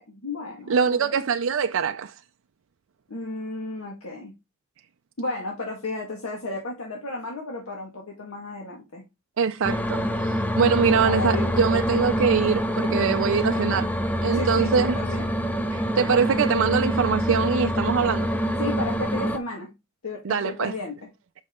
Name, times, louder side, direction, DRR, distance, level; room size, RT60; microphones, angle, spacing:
voice 1, 0.1-1.2 3.1-4.3 5.2-9.0 10.9-11.7 12.9-13.2 14.3-15.3 18.6-19.7 20.0-21.1, left 2 dB, 80° left, 1.7 m, -33 dB
voice 2, 0.7-2.1 9.4-13.9 14.2-15.0 15.7-18.3 20.2-20.7, right 6 dB, 70° right, 0.4 m, -23 dB
sound 1, 9.6-19.4, equal, 5° left, 0.5 m, -25 dB
7.2 x 5.5 x 3.6 m
head